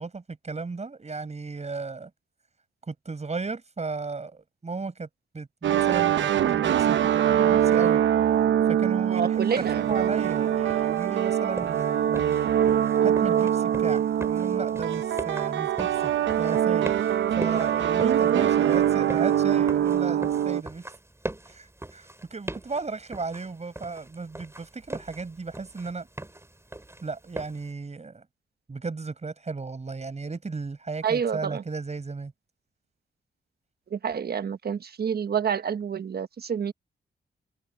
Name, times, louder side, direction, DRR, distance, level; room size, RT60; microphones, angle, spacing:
voice 1, 0.0-2.1 2.9-5.1 5.3-8.0 8.7-12.4 13.0-16.1 16.4-16.9 17.3-20.8 21.5-26.1 27.0-28.2 28.7-32.3, right 4 dB, 35° right, 7.8 m, -35 dB
sound 1, 5.6-20.6, right 10 dB, 85° right, 0.8 m, -23 dB
voice 2, 9.1-9.8 31.0-31.6 33.9-36.7, right 7 dB, 60° right, 1.2 m, -28 dB
sound 2, 9.3-27.7, right 1 dB, 15° right, 6.1 m, -41 dB
cardioid pair, 75°, 19 cm